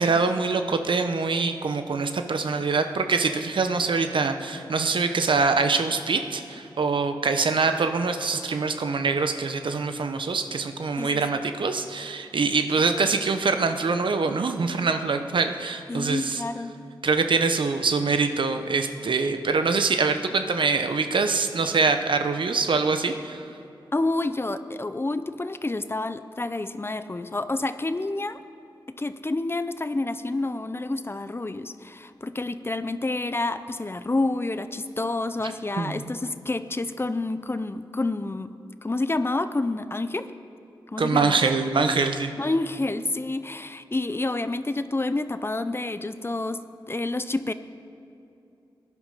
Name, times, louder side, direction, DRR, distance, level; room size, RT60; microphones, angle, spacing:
voice 1, 0.0-16.4 17.0-23.4 35.8-36.0 41.0-42.3, right 4 dB, 70° right, 8 dB, 0.9 m, -24 dB
voice 2, 15.9-16.7 23.9-28.4 28.9-38.5 38.8-40.3 40.9-41.5 42.4-46.6 46.9-47.5, left 2 dB, 25° left, 11 dB, 0.6 m, -28 dB
18.0 x 11.0 x 5.7 m, 2.8 s
cardioid pair, 65°, 9 cm